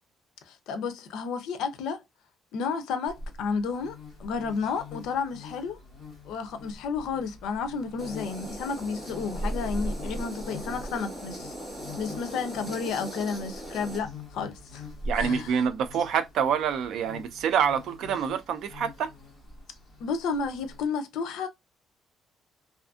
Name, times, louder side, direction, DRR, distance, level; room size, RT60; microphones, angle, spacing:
voice 1, 0.5-2.0 2.5-5.8 6.2-11.5 12.0-14.9 15.1-15.6 20.0-21.5, left 5 dB, 80° left, 0.5 m, -32 dB
sound 1, 3.1-20.9, left 1 dB, 20° left, 1.2 m, -41 dB
sound 2, 8.0-14.0, equal, 10° right, 1.3 m, -40 dB
voice 2, 15.1-19.1, right 7 dB, 60° right, 0.4 m, -26 dB
2.6 x 2.5 x 2.3 m
cardioid pair, 175°, 0 cm